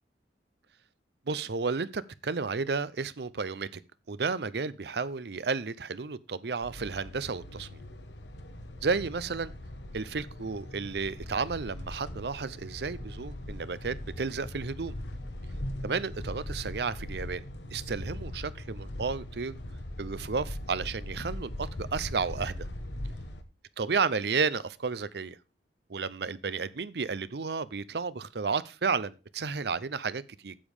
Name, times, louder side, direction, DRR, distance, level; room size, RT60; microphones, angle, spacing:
voice 1, 1.3-3.8 4.1-7.8 8.8-9.5 9.9-14.9 15.8-17.4 17.7-19.6 20.0-22.7 23.8-25.4 25.9-30.6, right 5 dB, 65° right, 0.6 m, -32 dB
sound 1, 6.6-23.4, left 1 dB, 80° left, 1.3 m, -40 dB
8.6 x 7.3 x 4.9 m
head